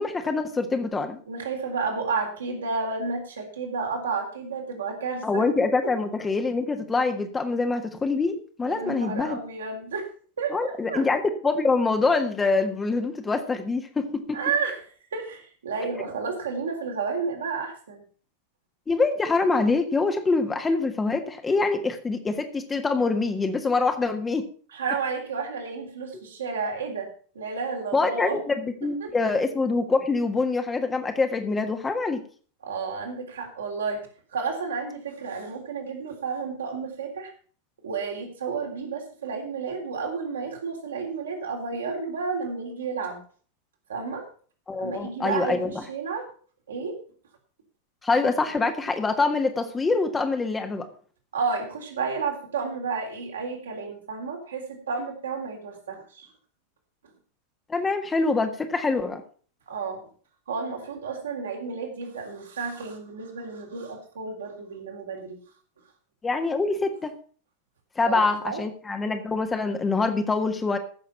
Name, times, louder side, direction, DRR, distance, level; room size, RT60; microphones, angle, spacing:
voice 1, 0.0-1.2 5.2-9.4 10.5-14.4 18.9-24.4 27.9-28.5 28.8-32.2 44.7-45.8 48.0-50.9 57.7-59.2 66.2-67.1 68.0-70.8, left 3 dB, 15° left, 6 dB, 1.6 m, -25 dB
voice 2, 1.3-5.4 8.6-10.1 10.4-11.0 14.3-14.9 15.1-18.0 24.7-28.4 29.0-29.1 32.6-37.3 37.8-43.2 43.9-44.3 44.8-46.3 46.7-47.0 51.3-56.3 59.7-60.0 60.5-65.4 68.0-68.6, right 5 dB, 65° right, 1 dB, 3.6 m, -31 dB
15.0 x 6.9 x 5.7 m, 0.43 s
figure-of-eight pair, 90°, 0 cm